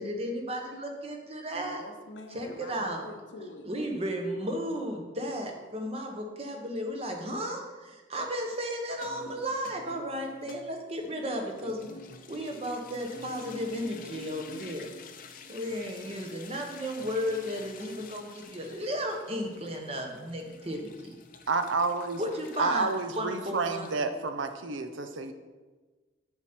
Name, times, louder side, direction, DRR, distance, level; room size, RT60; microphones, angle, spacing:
voice 1, 0.0-1.8 2.3-3.0 3.7-11.9 12.3-14.9 15.5-20.9 22.2-22.9 23.2-23.9, equal, 30° right, 3 dB, 1.0 m, -34 dB
voice 2, 1.5-3.7, left 2 dB, 80° left, 6 dB, 0.8 m, -45 dB
sound 1, 8.9-24.0, left 3 dB, 45° left, 0.6 m, -49 dB
voice 3, 21.5-22.2 22.6-25.3, right 3 dB, 90° right, 8 dB, 0.6 m, -29 dB
7.1 x 6.4 x 4.4 m, 1.3 s
head